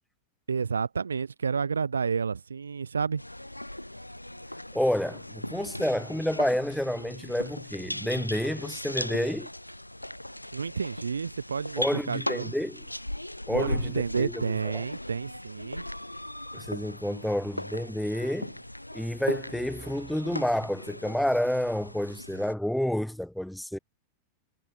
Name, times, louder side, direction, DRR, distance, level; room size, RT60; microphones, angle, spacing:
voice 1, 0.5-3.2 10.5-12.5 13.5-15.9, right 5 dB, 75° right, 0.6 m, -30 dB
sound 1, 3.2-22.5, left 1 dB, 85° left, 0.6 m, -38 dB
voice 2, 4.7-9.5 11.8-12.8 13.5-14.4 14.7-14.8 16.5-18.5 18.9-23.8, equal, ahead, 0.5 m, -29 dB
figure-of-eight pair, 90°, 0 cm